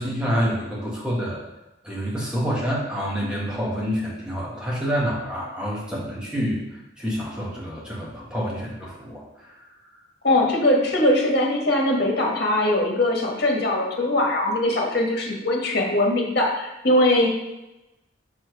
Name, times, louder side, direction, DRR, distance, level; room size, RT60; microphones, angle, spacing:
voice 1, 0.0-1.4 1.8-6.6 7.0-9.7, equal, 5° right, -6 dB, 1.9 m, -27 dB
voice 2, 10.2-17.3, left 1 dB, 60° left, -1 dB, 1.6 m, -21 dB
6.5 x 4.5 x 4.8 m, 0.95 s
head